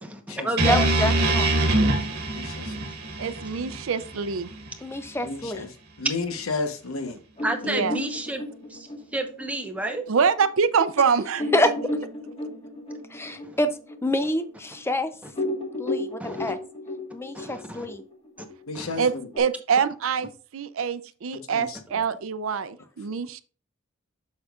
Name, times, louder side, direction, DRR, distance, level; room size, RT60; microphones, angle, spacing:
voice 1, 0.0-0.9 7.4-8.4 8.7-10.0 13.4-13.5 15.2-15.3 16.2-16.5 17.3-17.9 18.7-19.1, right 2 dB, 5° right, 0.9 m, -31 dB
sound 1, 0.6-4.7, right 2 dB, 50° right, 1.7 m, -24 dB
voice 2, 0.7-1.5 4.8-5.7 11.5-11.7 13.1-13.7 14.0-15.1 15.8-16.6 17.1-18.0, left 1 dB, 10° left, 0.5 m, -26 dB
voice 3, 2.3-2.7 5.2-5.7 6.0-7.2 18.7-19.2 21.5-21.8, left 3 dB, 80° left, 1.0 m, -32 dB
voice 4, 3.2-4.5 7.6-8.0 10.1-11.7 19.0-23.4, right 6 dB, 70° right, 0.5 m, -25 dB
sound 2, 7.4-10.5 10.9-11.0 11.4-15.0 15.3-19.4, left 1 dB, 30° left, 1.5 m, -34 dB
7.9 x 6.6 x 2.4 m
head